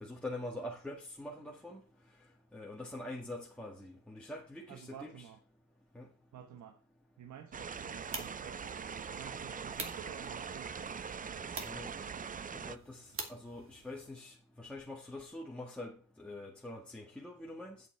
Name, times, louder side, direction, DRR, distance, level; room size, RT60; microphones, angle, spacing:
voice 1, 0.0-1.8 2.5-5.3 6.0-6.1 11.7-11.9 12.5-13.0 13.3-17.8, left 1 dB, 5° left, 1.9 m, -44 dB
voice 2, 4.7-5.4 6.3-6.8 7.2-12.3, right 9 dB, 70° right, 1.3 m, -52 dB
sound 1, 7.5-12.8, right 6 dB, 25° right, 0.6 m, -42 dB
sound 2, 7.7-14.1, right 3 dB, 45° right, 2.5 m, -48 dB
8.5 x 7.9 x 4.6 m
cardioid pair, 90°, 30 cm